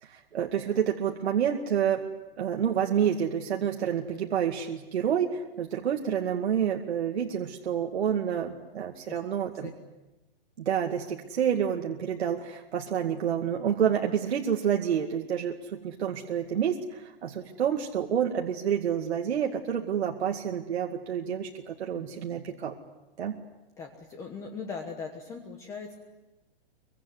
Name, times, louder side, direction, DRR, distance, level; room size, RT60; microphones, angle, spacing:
voice 1, 0.0-2.0 2.4-9.7 10.6-22.7 23.2-23.3, right 8 dB, 85° right, 2 dB, 2.3 m, -28 dB
voice 2, 23.8-25.9, left 5 dB, 10° left, 3 dB, 1.2 m, -39 dB
25.0 x 23.5 x 9.7 m, 1.1 s
hypercardioid pair, 180°, 31 cm